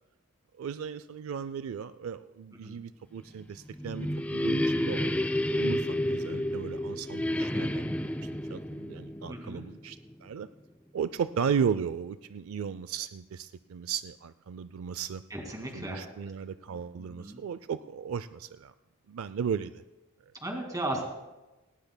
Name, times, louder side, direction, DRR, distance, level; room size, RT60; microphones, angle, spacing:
voice 1, 0.6-4.1 4.3-5.3 5.5-7.8 8.5-10.5 10.9-15.2 15.7-18.7 19.1-19.8, right 7 dB, 70° right, 14 dB, 0.4 m, -35 dB
sound 1, 3.4-10.1, left 1 dB, 5° left, 0.4 m, -30 dB
voice 2, 9.3-9.6 15.3-16.3 16.7-17.4 20.4-21.0, right 1 dB, 15° right, 2 dB, 2.1 m, -37 dB
18.5 x 18.0 x 2.2 m, 1.1 s
head